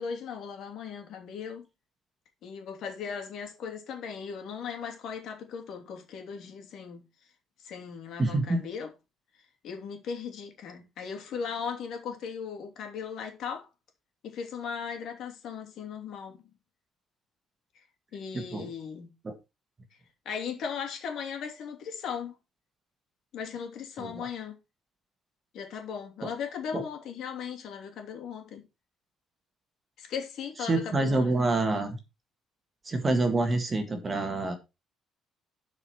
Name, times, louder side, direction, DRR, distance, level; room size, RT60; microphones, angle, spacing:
voice 1, 0.0-1.6 2.4-7.0 7.6-8.9 9.6-13.7 14.2-16.5 18.1-19.1 20.2-22.4 23.3-24.5 25.5-28.6 30.0-31.3, left 6 dB, 55° left, 2.9 m, -37 dB
voice 2, 8.2-8.6 18.5-18.7 19.2-19.3 24.0-24.3 26.7-26.8 30.7-32.0 32.9-34.5, right 2 dB, 20° right, 1.7 m, -27 dB
12.0 x 5.0 x 4.4 m
cardioid pair, 165°, 0 cm